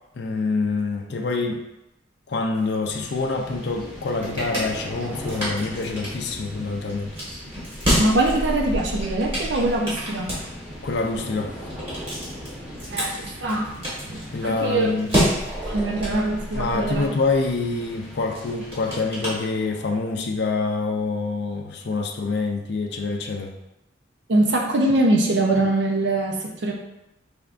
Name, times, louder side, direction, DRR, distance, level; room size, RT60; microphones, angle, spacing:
voice 1, 0.1-1.6 2.3-7.2 10.8-11.6 14.3-15.2 15.7-15.8 16.5-23.6, left 3 dB, 55° left, 2 dB, 0.4 m, -26 dB
sound 1, 2.9-19.8, left 1 dB, 5° right, 0.9 m, -40 dB
sound 2, 3.8-20.0, equal, 25° right, 1.5 m, -30 dB
voice 2, 8.0-10.3 12.9-13.7 14.1-14.9 15.7-17.1 24.3-26.7, right 2 dB, 65° right, 1 dB, 0.5 m, -23 dB
4.9 x 3.4 x 2.4 m, 0.90 s
head